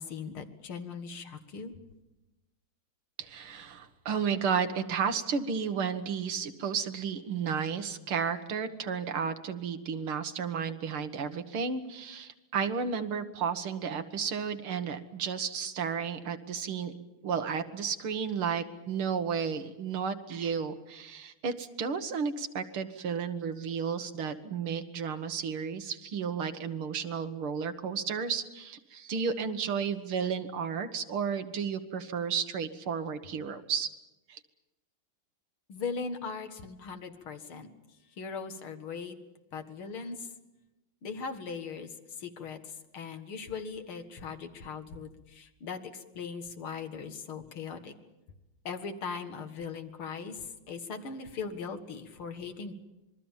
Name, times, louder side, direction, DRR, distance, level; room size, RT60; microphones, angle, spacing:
voice 1, 0.0-1.8 35.7-37.7 38.2-39.2 39.5-40.3 41.0-47.9 48.6-52.7, left 5 dB, 80° left, 6 dB, 2.6 m, -39 dB
voice 2, 3.2-16.9 17.2-33.9 34.3-34.4, right 6 dB, 90° right, 8 dB, 2.4 m, -33 dB
26.5 x 22.0 x 7.3 m, 1.0 s
omnidirectional pair, 2.3 m